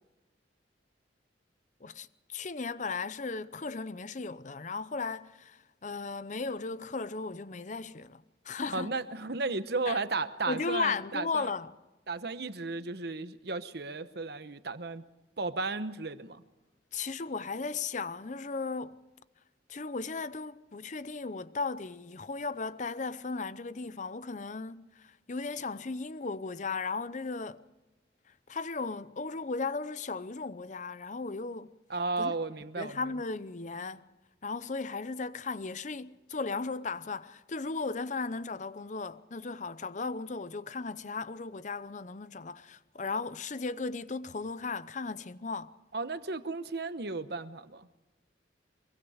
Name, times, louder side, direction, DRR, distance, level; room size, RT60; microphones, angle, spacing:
voice 1, 1.8-8.9 9.9-10.0 10.5-11.7 16.9-19.0 19.7-27.6 28.5-31.7 32.2-32.3 32.8-34.1 34.4-45.7, left 4 dB, 40° left, 0.7 m, -36 dB
voice 2, 8.7-11.5 12.1-15.0 15.4-16.4 31.9-33.0 45.9-47.9, right 3 dB, 60° right, 1.0 m, -34 dB
24.0 x 22.5 x 5.0 m
head